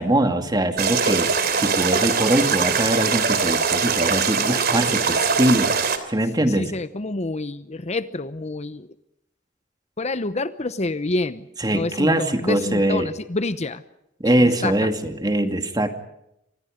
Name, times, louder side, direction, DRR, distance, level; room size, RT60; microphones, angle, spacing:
voice 1, 0.0-6.7 11.6-13.1 14.2-15.9, right 1 dB, 20° right, 7 dB, 2.4 m, -22 dB
sound 1, 0.8-6.0, right 5 dB, 55° right, 3.0 m, -22 dB
voice 2, 6.5-8.9 10.0-13.8 14.4-14.9, left 2 dB, 35° left, 13 dB, 0.9 m, -28 dB
29.5 x 25.5 x 5.2 m, 0.81 s
head